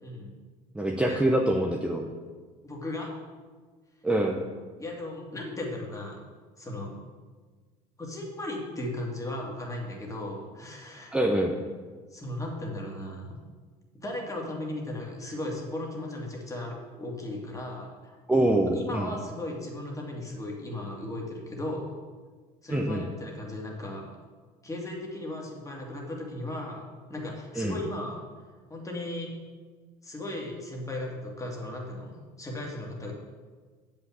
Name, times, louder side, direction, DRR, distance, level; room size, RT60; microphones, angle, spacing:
voice 1, 0.0-0.4 1.1-1.2 2.6-3.1 4.8-6.2 6.6-6.9 8.0-11.2 12.1-13.4 13.9-18.2 18.7-21.9 22.6-24.1 24.6-26.8 27.1-28.2 28.7-29.3 30.0-33.1, left 1 dB, 20° left, -1 dB, 2.3 m, -36 dB
voice 2, 0.7-2.1 4.0-4.4 11.1-11.6 18.3-19.1 22.7-23.1 27.6-27.8, right 1 dB, 5° right, 1 dB, 0.9 m, -25 dB
7.8 x 5.5 x 7.3 m, 1.5 s
supercardioid pair, 95°, 17 cm